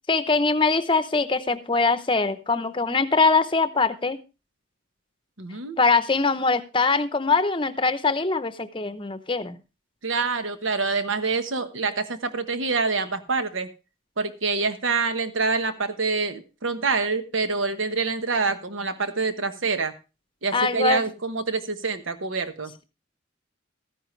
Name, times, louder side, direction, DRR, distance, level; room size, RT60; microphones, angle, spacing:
voice 1, 0.1-4.2 5.8-9.6 20.5-21.0, left 4 dB, 25° left, 12 dB, 0.7 m, -22 dB
voice 2, 5.4-5.8 10.0-13.7 14.2-20.0 20.4-22.7, right 4 dB, 80° right, 10 dB, 1.2 m, -26 dB
14.0 x 10.0 x 3.2 m, 0.30 s
head